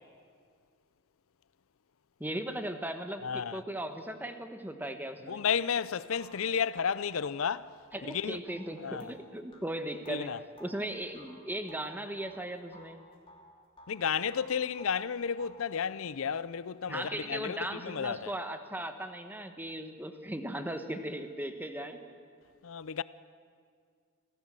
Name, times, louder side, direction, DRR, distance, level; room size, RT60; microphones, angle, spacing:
voice 1, 2.2-5.4 7.9-10.3 10.6-13.0 16.9-22.0, right 1 dB, 10° right, 1.2 m, -38 dB
voice 2, 3.2-3.6 5.3-7.7 8.1-8.4 8.8-9.1 10.1-10.4 13.9-18.3 22.6-23.0, left 7 dB, 70° left, 0.5 m, -32 dB
sound 1, 5.5-5.6 6.1-12.4 12.7-14.0 14.3-15.7, left 1 dB, 25° left, 2.8 m, -56 dB
26.0 x 16.5 x 7.6 m
head